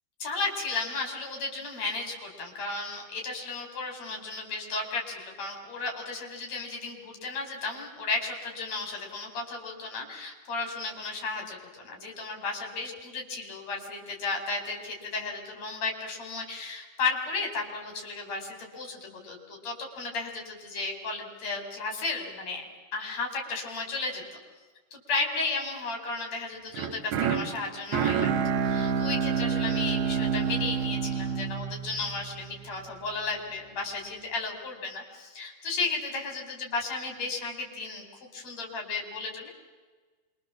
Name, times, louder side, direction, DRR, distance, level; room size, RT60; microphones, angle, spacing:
voice 1, 0.2-22.6 22.9-24.4 24.9-39.5, left 3 dB, 40° left, 2 dB, 6.0 m, -34 dB
sound 1, 26.7-32.9, right 6 dB, 80° right, 3.9 m, -28 dB
27.0 x 24.5 x 7.5 m, 1.3 s
omnidirectional pair, 4.9 m